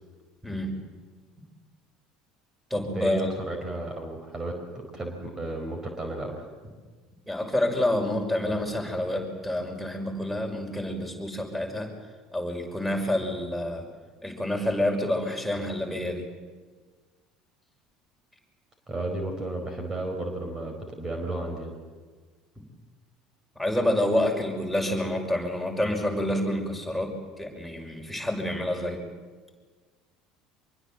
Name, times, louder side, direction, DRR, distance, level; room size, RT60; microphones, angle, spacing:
voice 1, 0.4-0.8 2.7-3.3 7.3-11.9 12.3-13.8 14.2-16.2 23.6-29.0, left 1 dB, ahead, 3 dB, 5.9 m, -28 dB
voice 2, 2.9-6.4 18.9-21.8, right 2 dB, 25° right, 4 dB, 4.3 m, -33 dB
25.0 x 23.0 x 7.7 m, 1.4 s
figure-of-eight pair, 65°, 2 cm